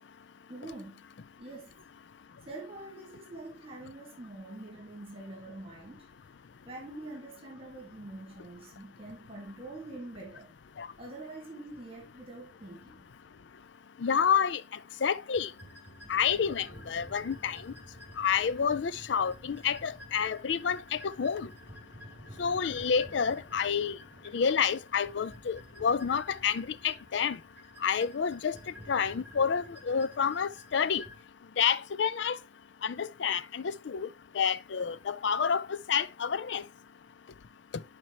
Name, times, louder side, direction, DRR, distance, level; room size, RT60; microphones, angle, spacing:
voice 1, 0.5-1.0 1.4-1.7 2.5-6.1 6.7-10.6 11.0-13.0, right 2 dB, 30° right, 1.9 m, -45 dB
voice 2, 14.0-14.6 15.0-15.5 16.1-17.6 18.2-21.5 22.4-24.0 24.3-27.4 27.8-28.5 28.9-31.0 31.6-32.4 32.8-34.1 34.3-36.6, left 7 dB, 70° left, 0.4 m, -29 dB
sound 1, 15.3-31.2, equal, 10° right, 3.1 m, -51 dB
10.5 x 4.5 x 2.9 m
head